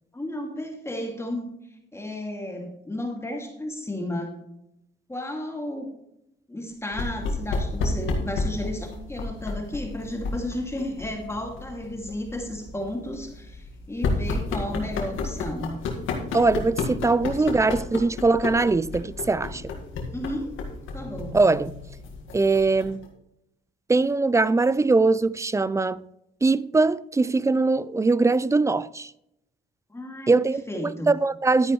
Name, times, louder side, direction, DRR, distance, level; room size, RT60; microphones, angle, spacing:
voice 1, 0.1-1.5 1.9-4.4 5.1-5.9 6.5-15.8 17.3-17.8 20.1-20.6 20.9-21.4 29.9-31.1, left 1 dB, 15° left, 2.4 m, -33 dB
sound 1, 6.9-23.1, left 3 dB, 85° left, 1.9 m, -32 dB
voice 2, 16.3-19.6 21.3-21.7 22.3-23.1 23.9-26.1 26.4-29.1 30.3-31.7, right 3 dB, 15° right, 0.4 m, -21 dB
11.5 x 9.5 x 3.2 m
cardioid pair, 90°, 20 cm